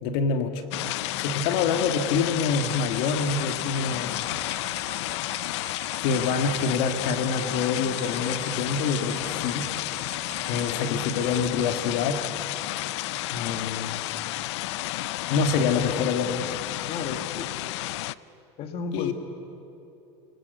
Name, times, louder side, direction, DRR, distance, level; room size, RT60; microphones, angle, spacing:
voice 1, 0.0-0.6 1.2-4.3 6.0-9.7 10.0-10.1 10.5-12.2 13.3-14.0 15.3-16.6 18.9-19.1, left 5 dB, 70° left, 6 dB, 1.9 m, -26 dB
sound 1, 0.7-18.1, left 17 dB, 90° left, 0.5 m, -31 dB
sound 2, 2.5-11.7, right 14 dB, 65° right, 3.5 m, -46 dB
voice 2, 16.9-17.5 18.6-19.1, left 5 dB, 45° left, 6 dB, 1.7 m, -33 dB
28.5 x 19.5 x 8.2 m, 2.9 s
supercardioid pair, 135°, 14 cm